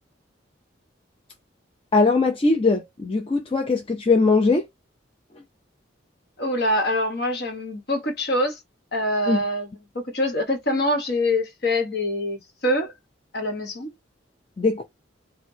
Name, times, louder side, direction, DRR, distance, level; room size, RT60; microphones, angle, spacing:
voice 1, 1.9-4.7 9.3-9.4 14.6-14.8, left 3 dB, 30° left, 0.5 m, -20 dB
voice 2, 6.4-8.6 8.9-9.7 10.1-12.9 13.3-13.9, left 1 dB, 55° left, 1.1 m, -24 dB
4.4 x 2.1 x 2.7 m
head